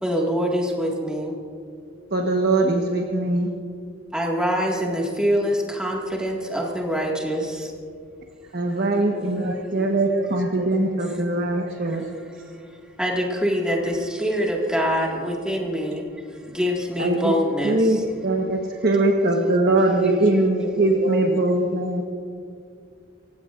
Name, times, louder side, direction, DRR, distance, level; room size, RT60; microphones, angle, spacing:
voice 1, 0.0-1.4 4.1-7.7 11.8-12.0 12.5-12.7 13.0-16.0 16.3-18.0, equal, 5° right, -2 dB, 1.9 m, -24 dB
voice 2, 2.1-3.5 8.5-12.0 17.0-17.3 17.6-22.0, right 2 dB, 50° right, 1 dB, 1.3 m, -21 dB
voice 3, 9.1-11.8 19.0-19.1 19.7-20.1 20.6-22.0, right 1 dB, 85° right, 0 dB, 2.5 m, -35 dB
28.0 x 16.0 x 2.6 m, 2.3 s
head